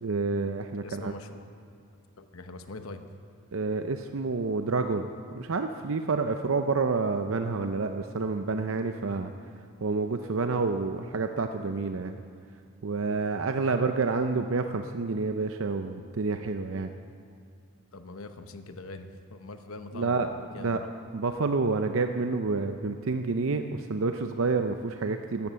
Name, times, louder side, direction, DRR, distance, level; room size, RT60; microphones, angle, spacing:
voice 1, 0.0-1.1 3.5-9.3 9.8-12.2 12.8-16.9 19.9-20.3 20.6-20.8 21.1-25.5, right 4 dB, 70° right, 7 dB, 0.6 m, -29 dB
voice 2, 0.8-1.5 2.2-3.0 17.9-20.9, left 3 dB, 75° left, 8 dB, 0.9 m, -43 dB
13.0 x 12.5 x 7.5 m, 2.3 s
head